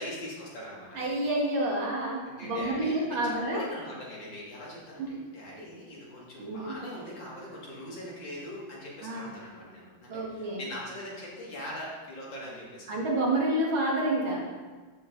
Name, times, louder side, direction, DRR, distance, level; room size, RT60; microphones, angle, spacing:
voice 1, 0.0-1.0 2.2-12.9, left 1 dB, 65° left, -5 dB, 3.0 m, -41 dB
voice 2, 0.9-3.6 5.0-5.1 6.4-6.8 9.0-9.3 10.1-10.6 12.9-14.4, right 1 dB, 75° right, -3 dB, 2.5 m, -29 dB
13.0 x 5.5 x 4.0 m, 1.4 s
omnidirectional pair, 2.2 m